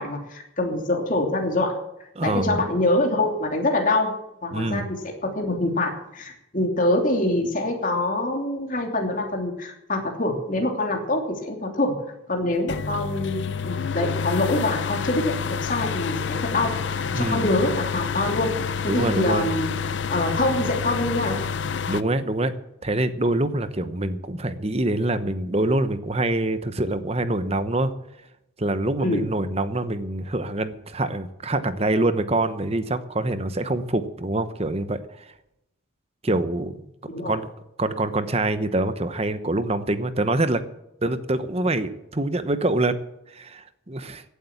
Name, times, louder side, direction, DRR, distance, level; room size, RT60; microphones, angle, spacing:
voice 1, 0.0-1.7 2.2-4.1 4.4-4.8 5.2-11.9 12.3-18.5 18.8-19.7 20.1-21.4 29.0-29.2 36.3-36.4 37.1-37.4, left 2 dB, 40° left, 2 dB, 2.9 m, -25 dB
voice 2, 2.2-2.6 4.5-4.9 17.1-17.5 18.9-19.5 21.9-22.6 22.8-27.9 28.6-35.0 36.2-36.8 37.3-37.5 37.8-40.6 41.0-43.0 43.3-44.2, right 2 dB, 30° right, 11 dB, 1.0 m, -25 dB
sound 1, 12.7-22.0, left 6 dB, 60° left, 0.6 m, -28 dB
16.5 x 8.4 x 7.2 m, 0.83 s
head